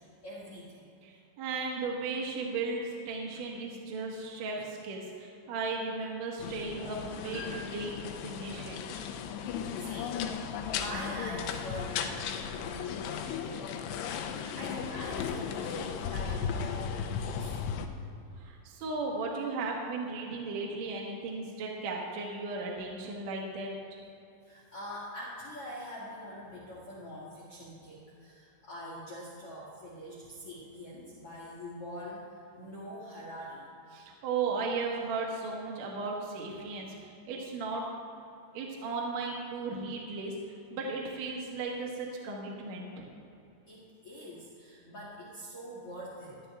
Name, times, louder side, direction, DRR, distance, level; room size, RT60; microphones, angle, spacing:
voice 1, 0.0-0.9 9.8-14.0 14.3-17.6 24.4-32.3 32.5-33.7 43.7-46.4, equal, 65° left, -6 dB, 1.4 m, -44 dB
voice 2, 1.0-9.1 18.4-23.7 33.9-37.8 38.5-40.3 40.7-43.1, right 3 dB, 60° right, -2 dB, 1.9 m, -36 dB
sound 1, 6.4-17.9, left 7 dB, 80° left, 2.5 m, -36 dB
13.5 x 11.5 x 3.6 m, 2.8 s
omnidirectional pair, 5.4 m